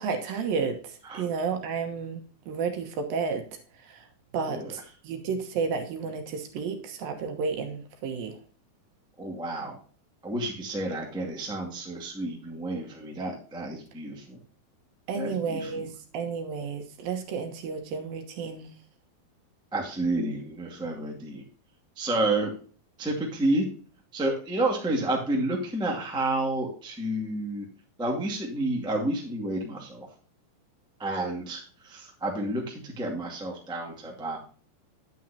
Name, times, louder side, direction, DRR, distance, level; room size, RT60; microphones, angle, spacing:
voice 1, 0.0-2.2 2.5-3.5 3.7-4.1 4.3-8.4 15.1-18.7, right 5 dB, 70° right, 5 dB, 2.8 m, -32 dB
voice 2, 9.2-9.8 10.2-14.4 15.1-15.9 19.7-21.4 21.9-22.5 23.0-23.7 24.1-27.7 28.0-30.1 31.0-34.4, right 2 dB, ahead, 0 dB, 1.0 m, -30 dB
9.3 x 9.2 x 2.8 m, 0.40 s
omnidirectional pair, 4.5 m